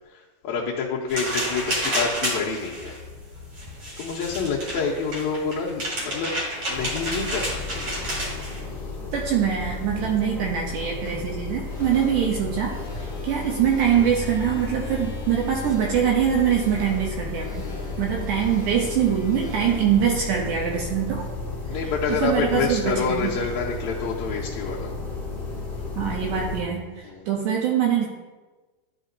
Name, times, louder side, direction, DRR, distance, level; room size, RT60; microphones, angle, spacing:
voice 1, 0.1-3.0 4.0-6.3 6.7-8.0 13.0-13.3 17.5-18.0 21.7-24.9 27.0-27.3, left 5 dB, 75° left, -5 dB, 1.8 m, -28 dB
sound 1, 1.1-8.6, right 1 dB, 50° right, 2.4 m, -30 dB
sound 2, 6.7-26.6, left 3 dB, ahead, 0.5 m, -33 dB
voice 2, 9.1-17.7 18.0-21.3 21.8-23.3 26.0-28.1, right 8 dB, 80° right, -1 dB, 2.1 m, -24 dB
Before guitar set, 11.7-21.1, left 2 dB, 45° left, 0.7 m, -41 dB
11.0 x 4.9 x 2.6 m, 1.3 s
omnidirectional pair, 3.8 m